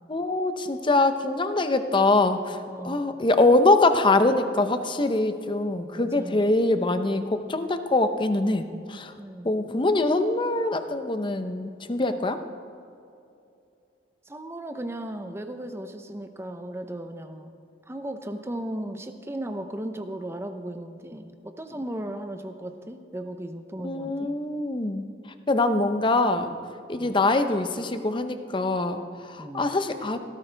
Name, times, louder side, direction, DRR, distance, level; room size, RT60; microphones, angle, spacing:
voice 1, 0.1-2.6 2.8-9.1 9.4-12.4 23.8-25.1 25.5-26.6 26.9-30.2, left 2 dB, 25° left, 9 dB, 0.7 m, -23 dB
voice 2, 2.7-3.0 6.0-6.5 9.2-9.5 14.2-17.5 17.9-24.3 27.0-27.2 29.4-29.7, right 1 dB, 15° right, 7 dB, 0.7 m, -36 dB
16.5 x 14.0 x 3.4 m, 2.6 s
head